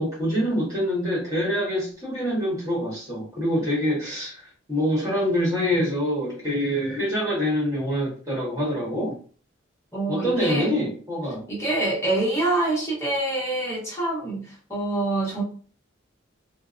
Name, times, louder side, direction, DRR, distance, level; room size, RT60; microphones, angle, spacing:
voice 1, 0.0-9.1 10.1-11.5, equal, 15° right, -6 dB, 1.2 m, -25 dB
voice 2, 9.9-10.7 11.5-15.4, right 2 dB, 15° left, -6 dB, 0.9 m, -26 dB
2.7 x 2.0 x 2.4 m, 0.42 s
head